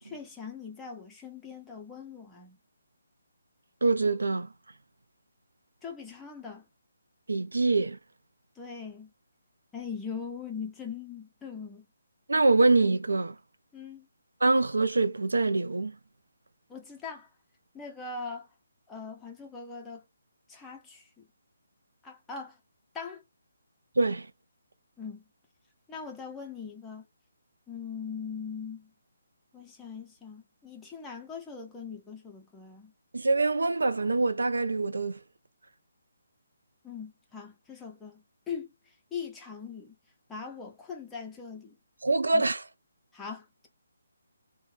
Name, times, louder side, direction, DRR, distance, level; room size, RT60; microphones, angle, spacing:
voice 1, 0.0-2.6 5.8-6.6 8.6-9.1 9.7-11.8 13.7-14.1 16.7-17.3 17.7-18.5 18.9-20.0 20.5-21.3 22.0-22.6 22.9-23.2 25.0-25.2 25.9-27.1 27.7-28.9 29.5-32.9 36.8-38.7 39.1-40.0 40.3-41.8 42.3-42.4 43.1-43.7, left 5 dB, 10° left, 0.7 m, -41 dB
voice 2, 3.8-4.5 7.3-8.0 12.3-13.4 14.4-15.9 24.0-24.3 33.1-35.2 42.0-42.6, right 3 dB, 80° right, 0.5 m, -24 dB
2.6 x 2.3 x 3.2 m
figure-of-eight pair, 150°, 0 cm